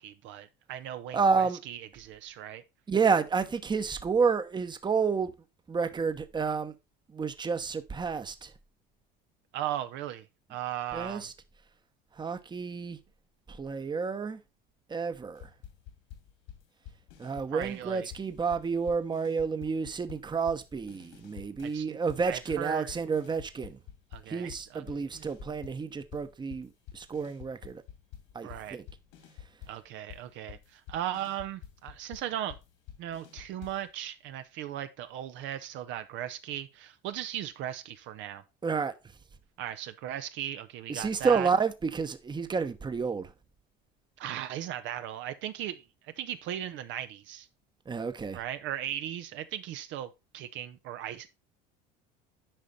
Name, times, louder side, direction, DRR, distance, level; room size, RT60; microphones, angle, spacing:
voice 1, 0.0-2.6 9.5-11.3 17.5-18.1 21.6-22.0 22.3-22.9 24.1-25.3 28.4-28.8 29.7-32.6 33.0-38.4 39.6-41.5 44.2-45.8 46.2-47.5 48.3-51.3, right 11 dB, 60° right, 0.8 m, -37 dB
voice 2, 1.1-1.6 2.9-5.3 5.7-6.7 7.1-8.5 10.9-11.3 12.2-13.0 13.6-14.4 14.9-15.5 17.2-23.8 24.3-26.7 26.9-27.8 28.3-28.8 38.6-38.9 40.9-43.3 47.9-48.4, right 5 dB, 20° right, 1.0 m, -30 dB
sound 1, 15.4-17.9 18.1-21.8 22.1-25.8 26.1-33.9, left 10 dB, 70° left, 2.6 m, -49 dB
9.0 x 5.0 x 4.1 m
supercardioid pair, 90°, 21 cm